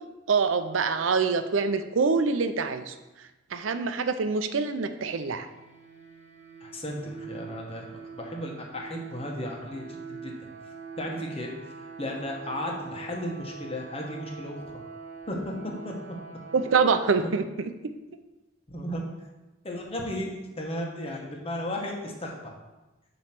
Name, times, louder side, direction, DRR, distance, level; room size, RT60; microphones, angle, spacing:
voice 1, 0.3-2.9 3.5-5.5 16.5-17.9, right 5 dB, 90° right, 10 dB, 0.5 m, -25 dB
sound 1, 4.8-16.9, right 5 dB, 70° right, 1.1 m, -44 dB
voice 2, 6.6-10.3 11.0-11.5 11.8-14.8 15.3-15.5 15.8-15.9 18.7-19.0 19.6-22.5, left 1 dB, 30° left, 0 dB, 1.1 m, -35 dB
7.5 x 3.1 x 5.9 m, 1.1 s
head